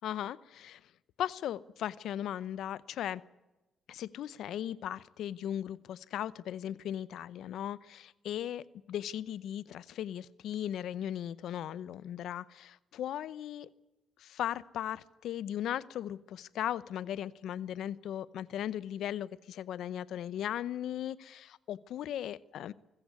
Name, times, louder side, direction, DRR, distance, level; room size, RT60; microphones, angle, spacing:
voice 1, 0.0-0.9 1.2-3.2 3.9-13.7 14.2-22.7, left 11 dB, 75° left, 19 dB, 0.8 m, -37 dB
25.0 x 15.0 x 9.6 m, 1.0 s
cardioid pair, 90°, 0 cm